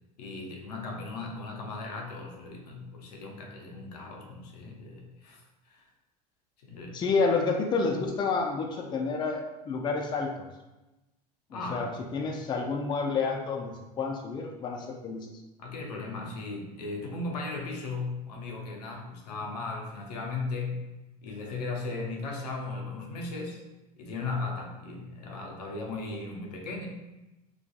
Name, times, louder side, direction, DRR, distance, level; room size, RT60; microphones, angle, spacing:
voice 1, 0.2-5.8 6.6-7.0 11.5-11.9 15.6-20.8 21.2-23.6 24.0-26.9, left 3 dB, 85° left, 1 dB, 0.5 m, -37 dB
voice 2, 6.9-10.5 11.5-15.3, left 4 dB, 25° left, 1 dB, 0.4 m, -29 dB
2.6 x 2.3 x 2.2 m, 1.0 s
hypercardioid pair, 85°, 20 cm